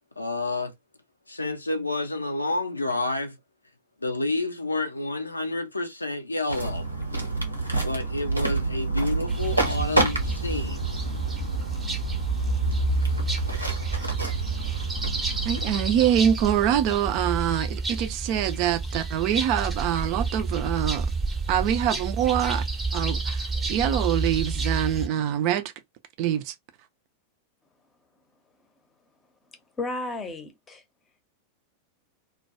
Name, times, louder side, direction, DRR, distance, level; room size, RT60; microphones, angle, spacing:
voice 1, 0.2-0.7 1.3-3.4 4.0-6.8 7.8-10.8, left 2 dB, 80° left, 0.4 m, -29 dB
sound 1, 6.5-15.8, right 3 dB, 85° right, 0.7 m, -29 dB
sound 2, 9.3-25.1, right 3 dB, 15° right, 0.7 m, -29 dB
voice 2, 15.4-21.1 21.5-22.6 22.9-25.7 26.2-26.5, right 10 dB, 45° right, 0.4 m, -25 dB
voice 3, 29.8-30.8, left 2 dB, 20° left, 0.7 m, -33 dB
2.2 x 2.2 x 2.7 m
figure-of-eight pair, 90°, 0 cm